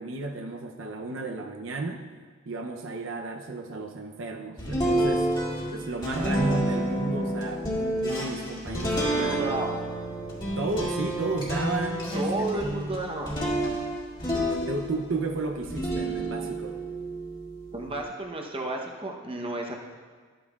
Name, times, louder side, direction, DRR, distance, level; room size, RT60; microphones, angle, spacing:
voice 1, 0.0-2.1 2.5-5.3 5.7-9.4 10.6-12.7 14.7-16.8, right 3 dB, 75° right, 3 dB, 0.7 m, -33 dB
sound 1, 4.6-15.2 15.6-18.0, right 1 dB, 25° left, 1.9 m, -29 dB
voice 2, 9.1-9.7 12.1-13.4 17.7-19.7, right 2 dB, 25° right, 1 dB, 0.8 m, -32 dB
12.5 x 8.9 x 2.4 m, 1.5 s
head